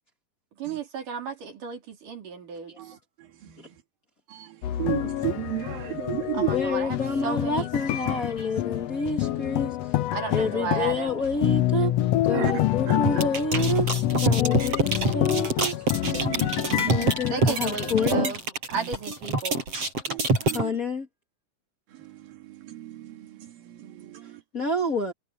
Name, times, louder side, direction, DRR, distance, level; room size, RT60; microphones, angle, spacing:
voice 1, 0.6-2.7 6.3-7.7 10.1-11.1 17.3-18.4 18.7-19.6, right 6 dB, 65° right, 5.1 m, -33 dB
voice 2, 4.3-6.5 12.3-12.5 12.9-13.0 16.0-17.1 20.1-20.7 22.0-24.4, right 13 dB, 90° right, 4.1 m, -33 dB
sound 1, 4.6-18.2, left 13 dB, 75° left, 1.5 m, -27 dB
voice 3, 6.5-9.8 10.3-11.9 12.2-13.9 14.2-15.7 16.8-18.3 20.5-21.1 24.5-25.1, left 2 dB, 30° left, 2.1 m, -28 dB
sound 2, 13.0-20.6, right 2 dB, 40° right, 8.7 m, -26 dB
omnidirectional pair, 4.0 m